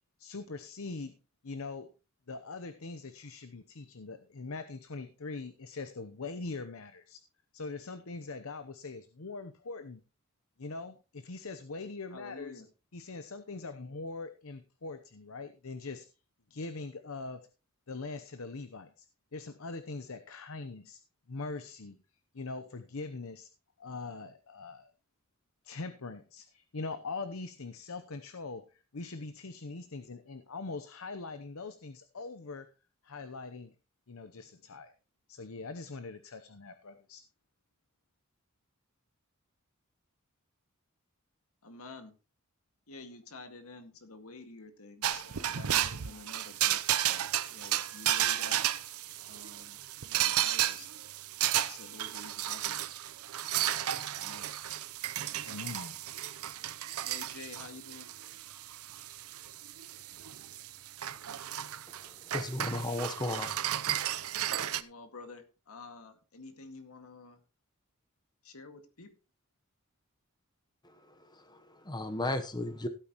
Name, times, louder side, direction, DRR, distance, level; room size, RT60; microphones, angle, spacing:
voice 1, 0.2-1.2 1.4-1.9 2.3-7.2 7.5-10.0 10.6-12.5 12.9-16.1 16.5-17.5 17.9-19.1 19.3-21.0 21.3-22.0 22.3-23.5 23.8-24.9 25.6-32.7 33.0-33.7 34.1-34.9 35.3-37.2 55.4-56.0, left 3 dB, 70° left, 0.8 m, -42 dB
voice 2, 12.1-12.7 41.6-42.1 42.9-48.6 49.3-49.8 50.0-50.9 51.7-52.9 54.2-54.5 57.0-58.1 64.7-67.4 68.4-69.1, left 3 dB, 85° left, 2.0 m, -50 dB
sound 1, 45.0-64.8, right 12 dB, 85° right, 0.7 m, -33 dB
voice 3, 61.9-63.6 70.8-72.9, left 2 dB, 20° left, 1.0 m, -36 dB
16.0 x 8.8 x 3.0 m
head